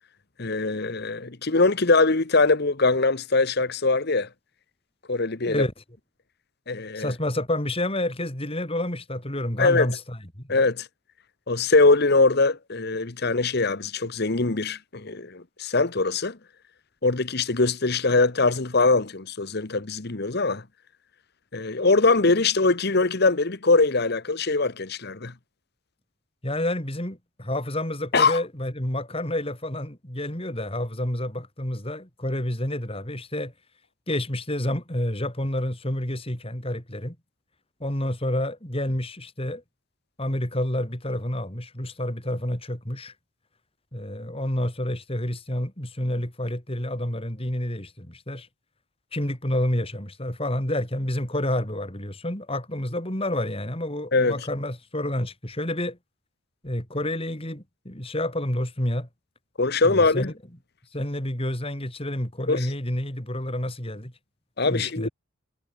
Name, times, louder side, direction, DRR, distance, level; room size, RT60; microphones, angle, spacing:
voice 1, 0.4-4.3 5.1-5.6 6.7-7.1 9.6-9.9 10.5-10.9 11.5-16.4 17.0-20.6 21.5-25.3 28.1-28.4 54.1-54.5 59.6-60.3 62.5-62.7 64.6-65.1, left 3 dB, 50° left, 1.2 m, -22 dB
voice 2, 6.9-10.2 10.4-10.5 26.4-33.5 34.1-37.2 37.8-39.6 40.2-43.1 43.9-48.5 49.1-56.0 56.6-59.1 59.8-60.3 60.9-64.1 64.7-65.1, left 1 dB, 30° left, 4.5 m, -29 dB
head